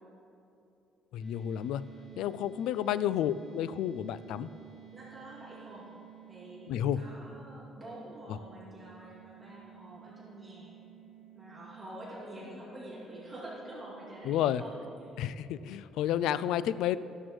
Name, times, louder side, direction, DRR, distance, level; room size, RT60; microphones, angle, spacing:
voice 1, 1.1-1.8 2.2-4.5 6.7-7.0 8.3-8.4 14.2-14.6 15.2-17.0, left 11 dB, 75° left, 16 dB, 0.3 m, -31 dB
sound 1, 1.2-15.0, right 10 dB, 10° left, 1.4 m, -54 dB
voice 2, 4.9-5.9 6.3-10.7 11.3-14.7 15.0-15.1, right 1 dB, 15° right, -7 dB, 2.6 m, -47 dB
14.0 x 12.0 x 3.2 m, 2.7 s
cardioid pair, 155°, 0 cm